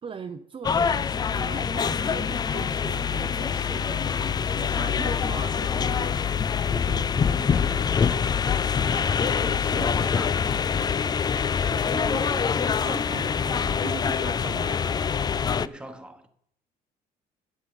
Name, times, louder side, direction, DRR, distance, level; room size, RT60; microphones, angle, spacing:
voice 1, 0.0-4.0 4.5-6.2 6.6-7.4 9.4-10.2 11.7-14.8, right 6 dB, 30° right, 0.6 m, -39 dB
sound 1, 0.6-15.7, left 6 dB, 25° left, 0.3 m, -25 dB
voice 2, 7.1-10.8 15.6-16.3, right 1 dB, 5° right, 1.3 m, -42 dB
8.9 x 7.5 x 8.0 m
cardioid pair, 110°, 17 cm